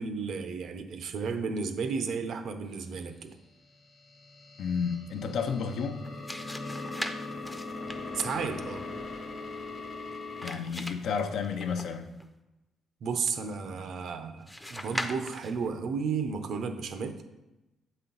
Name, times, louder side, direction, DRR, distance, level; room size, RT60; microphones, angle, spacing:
voice 1, 0.0-3.4 8.1-8.8 13.0-17.2, right 5 dB, 65° right, 0.6 m, -33 dB
sound 1, 4.0-10.5, left 3 dB, 50° left, 1.1 m, -40 dB
voice 2, 4.6-6.1 10.4-12.1, left 6 dB, 70° left, 0.6 m, -31 dB
sound 2, 5.9-12.3 14.5-15.7, left 1 dB, 5° left, 0.5 m, -41 dB
7.8 x 4.3 x 3.9 m
cardioid pair, 90°, 0 cm